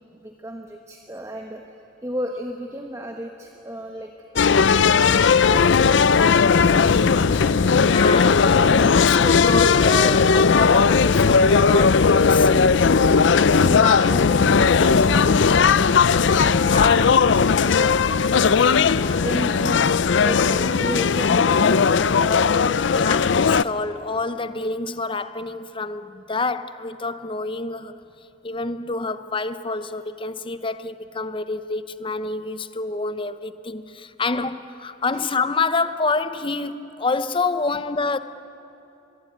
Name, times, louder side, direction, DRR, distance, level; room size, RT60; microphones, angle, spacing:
voice 1, 0.0-1.7 2.0-4.8 5.4-8.3 12.9-18.6 19.2-19.9 20.2-22.6 22.9-23.4 35.1-35.2, equal, 15° right, 1.2 m, -35 dB
sound 1, 4.4-23.6, left 5 dB, 65° left, 0.5 m, -17 dB
voice 2, 7.8-12.5 13.7-14.1 16.6-17.1 18.9-19.2 22.9-27.9 28.4-38.2, left 3 dB, 25° left, 0.8 m, -27 dB
24.0 x 21.5 x 9.4 m
head